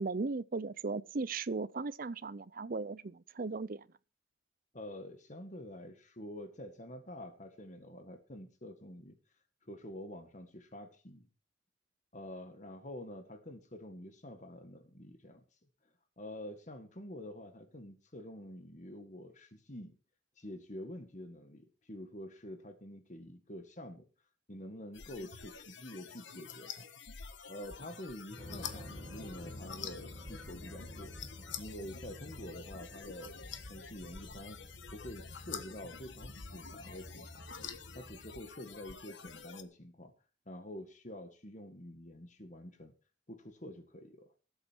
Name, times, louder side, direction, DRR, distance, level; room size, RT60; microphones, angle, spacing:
voice 1, 0.0-3.9, right 3 dB, 45° right, 0.6 m, -37 dB
voice 2, 4.7-9.2 9.6-11.3 12.1-15.4 16.2-20.0 20.4-24.0 24.5-26.9 27.5-31.2 31.6-33.3 33.7-34.6 34.9-37.4 37.9-40.1 40.4-42.9 43.3-44.3, left 1 dB, 40° left, 1.7 m, -47 dB
sound 1, 24.9-39.6, left 6 dB, 70° left, 1.4 m, -48 dB
sound 2, 28.4-38.3, left 1 dB, 15° right, 6.5 m, -51 dB
18.5 x 8.1 x 4.6 m
head